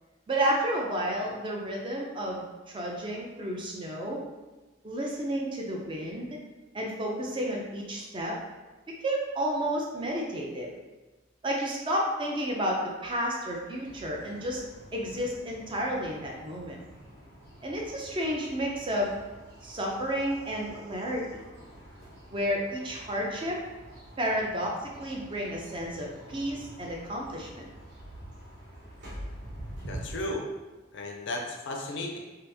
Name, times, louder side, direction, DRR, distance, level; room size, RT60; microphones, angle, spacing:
voice 1, 0.3-4.2 4.8-6.3 6.7-8.4 9.0-10.7 11.4-14.6 14.9-16.8 17.6-19.1 19.6-21.5 22.3-23.6 24.2-24.7 25.0-27.6, equal, 25° right, -1 dB, 0.4 m, -31 dB
sound 1, 13.8-30.2, right 1 dB, 55° right, 1.0 m, -47 dB
voice 2, 29.8-30.5 30.9-32.2, left 1 dB, 60° left, 2 dB, 0.5 m, -34 dB
2.8 x 2.4 x 3.4 m, 1.2 s
head